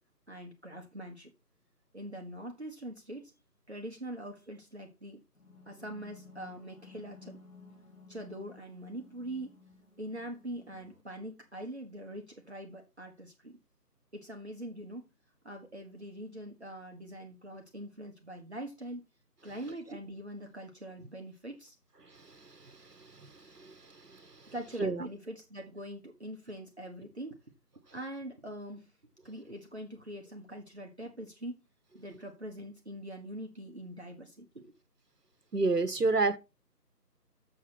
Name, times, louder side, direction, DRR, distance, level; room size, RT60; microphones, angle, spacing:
voice 1, 0.3-1.3 1.9-3.3 3.7-5.2 5.7-7.4 8.1-9.6 10.0-13.6 14.1-15.0 15.4-19.0 19.4-21.8 24.5-27.4 27.9-28.9 29.2-31.6 31.9-34.7, right 1 dB, 40° right, 1.2 m, -43 dB
sound 1, 5.4-11.0, left 3 dB, 50° left, 4.7 m, -55 dB
voice 2, 35.5-36.4, right 3 dB, 70° right, 1.4 m, -28 dB
7.2 x 7.0 x 4.3 m
figure-of-eight pair, 165°, 49 cm